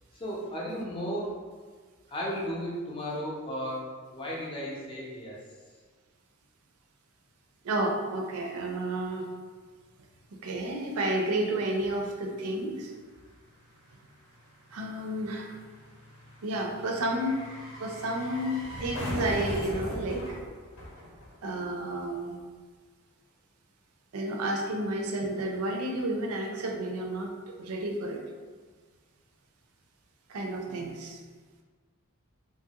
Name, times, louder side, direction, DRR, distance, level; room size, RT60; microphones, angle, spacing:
voice 1, 0.1-1.4 2.1-5.4 30.7-30.9, equal, 25° left, -4 dB, 0.5 m, -35 dB
voice 2, 7.6-9.3 10.3-12.9 14.7-15.6 16.4-17.4 17.8-20.4 21.4-22.4 24.1-27.3 27.6-28.2 30.3-31.2, right 1 dB, 85° right, 2 dB, 0.5 m, -31 dB
sound 1, 11.0-11.1 11.3-21.7 22.0-22.1, left 1 dB, 65° left, 0.7 m, -40 dB
3.0 x 2.3 x 2.8 m, 1.5 s
head